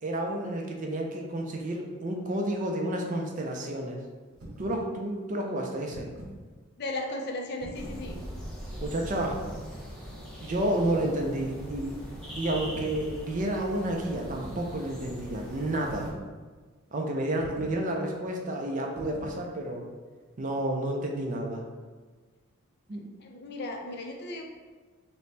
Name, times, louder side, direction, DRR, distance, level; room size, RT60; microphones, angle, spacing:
voice 1, 0.0-4.0 4.6-6.1 8.8-9.4 10.4-11.9 12.4-16.1 16.9-19.8 20.4-21.6 22.9-23.0, right 1 dB, 35° right, 1 dB, 0.4 m, -30 dB
sound 1, 4.3-4.8 5.7-6.4 7.6-8.1 9.1-9.6 10.8-11.2 12.5-13.0 14.2-14.6 15.9-16.3 17.4-17.8 19.0-19.4, right 1 dB, 80° right, 0.9 m, -43 dB
voice 2, 6.8-8.2 23.2-24.4, left 2 dB, 50° left, 1 dB, 0.4 m, -35 dB
sound 2, 7.7-16.1, equal, ahead, 0.6 m, -41 dB
4.1 x 2.1 x 3.2 m, 1.4 s
head